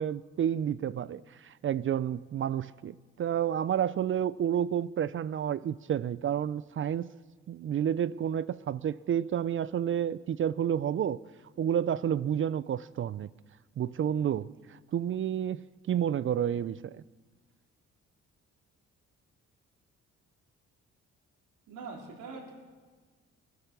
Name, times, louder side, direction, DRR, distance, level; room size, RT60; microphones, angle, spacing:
voice 1, 0.0-7.1 7.5-11.2 11.6-13.3 13.8-17.0, right 9 dB, 45° right, 0.4 m, -30 dB
voice 2, 21.7-22.5, right 4 dB, 90° right, 3.8 m, -43 dB
20.0 x 10.5 x 6.8 m
cardioid pair, 90°, 30 cm